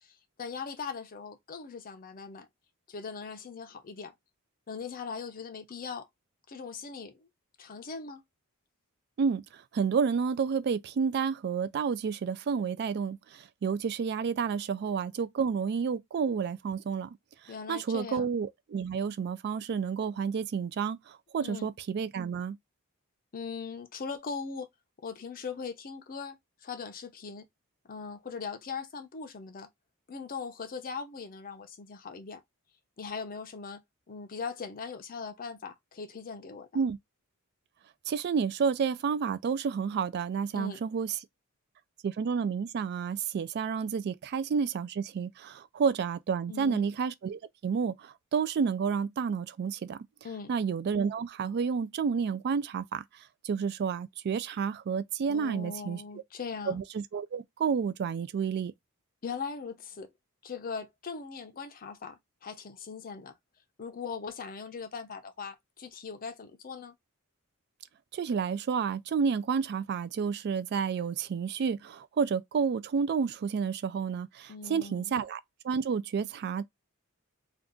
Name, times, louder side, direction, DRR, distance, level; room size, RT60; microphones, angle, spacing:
voice 1, 0.0-2.5 2.9-4.1 4.7-6.1 6.5-7.3 7.6-8.2 17.5-18.3 21.4-21.7 23.3-24.7 25.0-27.5 27.8-29.7 30.1-32.4 33.0-33.8 34.1-36.8 40.5-40.8 46.5-46.9 50.2-50.5 55.3-56.8 59.2-60.1 60.4-63.3 63.8-66.9 74.5-75.2, left 5 dB, 40° left, 0.5 m, -40 dB
voice 2, 9.2-17.2 17.7-22.6 36.7-37.0 38.1-41.2 42.0-50.0 50.5-53.0 53.4-56.0 56.7-58.7 68.1-76.6, right 6 dB, 50° right, 0.3 m, -30 dB
2.5 x 2.3 x 3.5 m
head